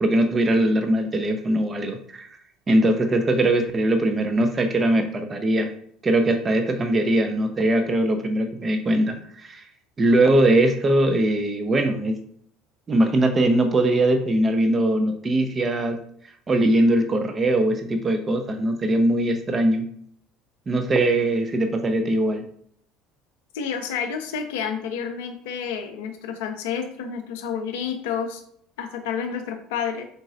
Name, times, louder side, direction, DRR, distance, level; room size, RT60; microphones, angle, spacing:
voice 1, 0.0-2.3 2.7-5.7 6.0-9.6 10.0-12.2 12.9-16.0 16.5-19.9 20.7-22.4, right 1 dB, 25° right, 7 dB, 0.5 m, -21 dB
voice 2, 23.5-28.4 28.8-30.0, left 7 dB, 65° left, 6 dB, 0.4 m, -29 dB
3.9 x 3.8 x 2.5 m, 0.65 s
figure-of-eight pair, 65°, 0 cm